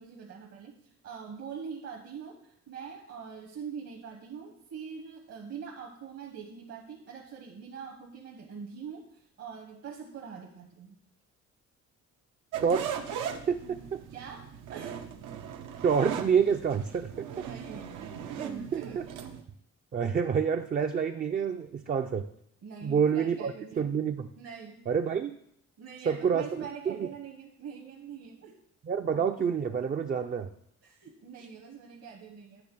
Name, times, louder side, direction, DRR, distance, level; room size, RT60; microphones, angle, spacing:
voice 1, 0.0-10.9 14.1-15.0 17.4-17.9 18.4-19.0 22.6-23.9 24.4-24.8 25.8-28.6 30.8-32.6, right 6 dB, 55° right, 1 dB, 1.0 m, -44 dB
sound 1, 12.5-19.4, right 8 dB, 85° right, 0.7 m, -39 dB
voice 2, 12.6-12.9 13.5-14.0 15.8-17.3 18.7-19.1 19.9-22.2 22.8-24.3 24.9-25.4 26.1-26.5 26.9-27.1 28.9-30.5, right 7 dB, 30° right, 6 dB, 0.4 m, -28 dB
8.6 x 3.4 x 5.9 m, 0.71 s
cardioid pair, 90°, 30 cm